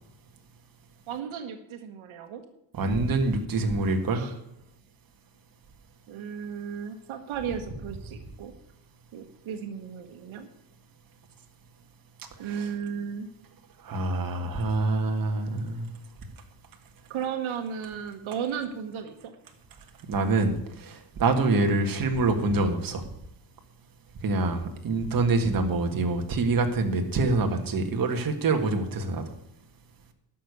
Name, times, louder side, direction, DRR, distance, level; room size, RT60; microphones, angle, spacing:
voice 1, 1.1-2.4 4.1-4.3 6.1-8.5 9.1-10.5 12.4-13.3 17.1-19.3, right 7 dB, 85° right, 7 dB, 1.4 m, -35 dB
voice 2, 2.7-4.3 12.6-12.7 13.8-15.9 20.1-23.1 24.2-29.2, right 3 dB, 45° right, 5 dB, 1.8 m, -25 dB
11.5 x 6.8 x 8.4 m, 0.82 s
cardioid pair, 130°, 47 cm